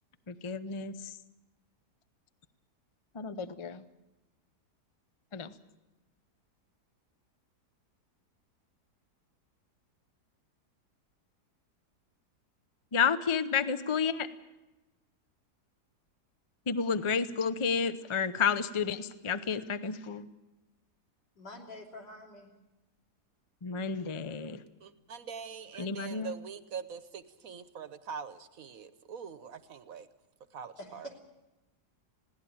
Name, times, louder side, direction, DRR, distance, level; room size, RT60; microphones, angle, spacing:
voice 1, 0.3-1.1 3.1-3.8 5.3-5.5 12.9-14.3 16.7-20.3 23.6-24.6 25.8-26.3, left 6 dB, 45° left, 12 dB, 0.4 m, -31 dB
voice 2, 21.4-22.5 30.8-31.2, left 1 dB, 75° left, 1 dB, 3.6 m, -46 dB
voice 3, 24.8-30.1 30.5-31.1, right 6 dB, 60° right, 12 dB, 1.2 m, -43 dB
21.0 x 16.5 x 8.7 m, 1.0 s
omnidirectional pair, 1.8 m